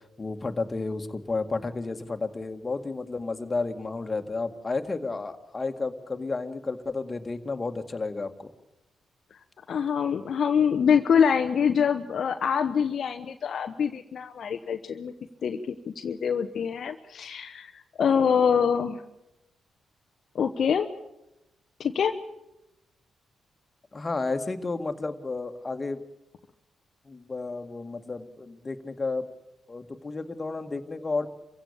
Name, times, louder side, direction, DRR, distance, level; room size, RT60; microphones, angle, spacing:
voice 1, 0.2-8.5 23.9-26.0 27.1-29.3 29.7-31.3, left 3 dB, 35° left, 7 dB, 2.0 m, -32 dB
voice 2, 9.7-15.1 15.4-17.7 18.0-19.0 20.3-20.9 21.8-22.1, left 7 dB, 60° left, 6 dB, 1.0 m, -25 dB
25.5 x 16.0 x 8.6 m, 0.91 s
hypercardioid pair, 45°, 0 cm